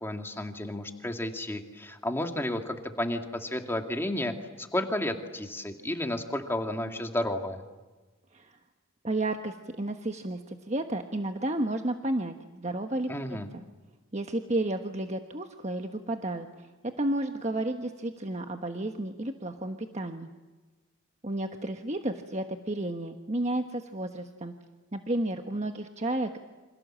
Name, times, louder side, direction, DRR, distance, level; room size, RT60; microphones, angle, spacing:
voice 1, 0.0-7.6 13.1-13.5, left 1 dB, 10° left, 4 dB, 2.2 m, -32 dB
voice 2, 9.0-13.1 14.1-16.7 17.0-20.3 21.2-24.5 24.9-26.4, right 1 dB, 30° right, 5 dB, 1.3 m, -32 dB
29.0 x 27.0 x 7.6 m, 1.3 s
head